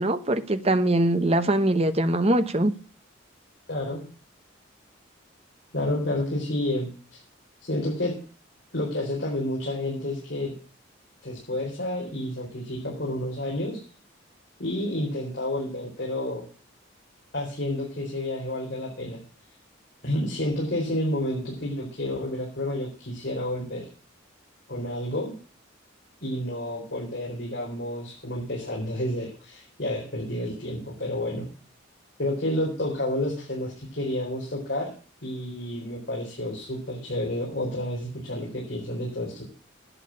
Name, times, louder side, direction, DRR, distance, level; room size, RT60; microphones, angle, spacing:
voice 1, 0.0-2.7, right 1 dB, 30° right, 10 dB, 1.0 m, -22 dB
voice 2, 3.7-4.0 5.7-7.2 7.6-8.1 8.7-10.5 11.2-13.8 14.6-16.4 17.3-19.2 20.0-23.8 24.7-25.4 26.2-31.4 32.2-34.9 35.2-39.4, left 1 dB, 55° left, -4 dB, 4.4 m, -30 dB
11.0 x 9.1 x 8.5 m, 0.40 s
head